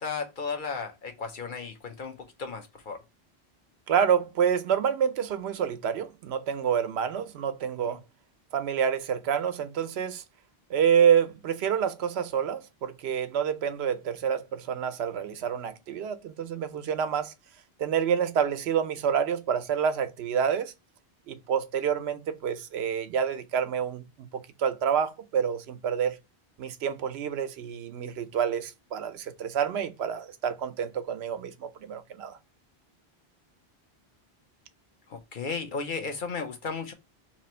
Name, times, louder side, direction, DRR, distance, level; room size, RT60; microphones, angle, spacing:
voice 1, 0.0-3.0 7.8-8.0 35.1-36.9, left 5 dB, 55° left, 0.8 m, -34 dB
voice 2, 3.9-8.0 8.5-10.2 10.7-17.3 17.8-20.7 21.3-26.2 26.6-32.4, right 8 dB, 85° right, 0.8 m, -28 dB
3.0 x 2.5 x 4.2 m
omnidirectional pair, 1.1 m